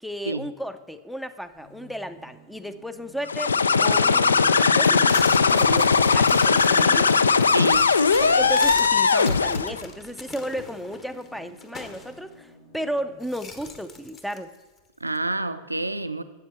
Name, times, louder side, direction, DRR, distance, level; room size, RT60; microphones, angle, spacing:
voice 1, 0.0-7.1 8.2-14.5, equal, ahead, 0.5 m, -34 dB
sound 1, 1.5-6.3 8.0-13.4 14.4-14.5 14.7-14.8, right 1 dB, 60° left, 3.3 m, -52 dB
sound 2, 3.3-9.8, left 5 dB, 75° left, 0.3 m, -19 dB
sound 3, 5.1-12.2 13.2-14.8 15.1-15.2, left 4 dB, 25° left, 1.1 m, -41 dB
voice 2, 7.5-7.9 8.2-8.5 15.0-16.2, right 2 dB, 85° right, 0.4 m, -28 dB
12.5 x 7.9 x 4.1 m
figure-of-eight pair, 90°, 0 cm